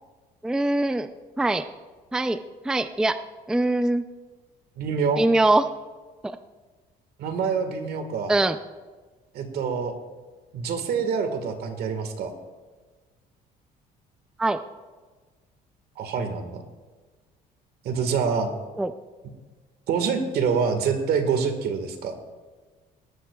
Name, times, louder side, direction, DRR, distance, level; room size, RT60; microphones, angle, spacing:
voice 1, 0.4-1.1 1.4-1.6 2.1-2.4 2.6-3.2 3.5-4.0 5.2-5.7 6.2-6.4 8.3-8.6 14.4-14.6 18.8-18.9, right 2 dB, 5° right, 10 dB, 0.4 m, -22 dB
voice 2, 4.8-5.2 7.2-8.3 9.3-9.9 10.5-12.3 16.0-16.6 17.8-18.5 19.9-22.1, right 6 dB, 70° right, 7 dB, 1.6 m, -26 dB
19.0 x 13.0 x 2.3 m, 1.3 s
cardioid pair, 110°, 17 cm